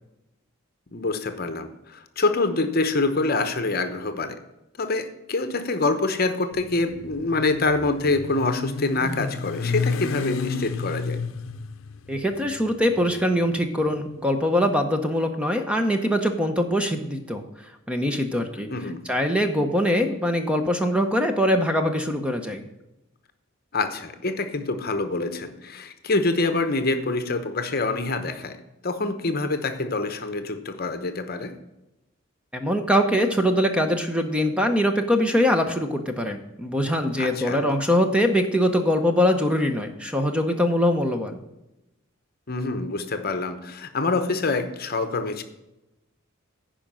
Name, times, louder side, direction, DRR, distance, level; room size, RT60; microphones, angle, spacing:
voice 1, 0.9-4.4 4.8-11.2 18.7-19.0 23.7-28.6 28.8-31.5 37.2-37.6 42.5-45.4, left 3 dB, 45° left, 9 dB, 0.9 m, -26 dB
Motorcycle, 6.5-14.7, left 4 dB, 75° left, 0.6 m, -32 dB
voice 2, 12.1-17.4 17.9-18.7 19.1-22.6 32.5-41.4, equal, 5° right, 6 dB, 0.7 m, -23 dB
10.0 x 5.1 x 7.4 m, 0.93 s
head